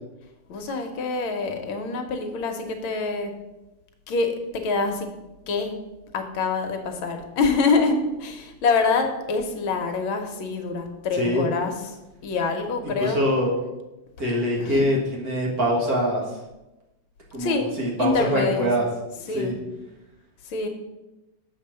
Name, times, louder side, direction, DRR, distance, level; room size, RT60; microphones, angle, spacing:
voice 1, 0.5-3.3 4.1-5.1 5.5-5.8 6.1-12.0 12.2-13.2 14.6-14.9 17.4-17.7 18.0-18.7 19.3-19.6 20.4-20.7, left 4 dB, 70° left, 5 dB, 1.7 m, -25 dB
voice 2, 11.1-11.4 12.8-13.5 14.2-16.3 17.3-18.8 19.3-19.5, equal, 45° right, -3 dB, 2.0 m, -24 dB
6.9 x 4.6 x 6.7 m, 1.0 s
omnidirectional pair, 2.4 m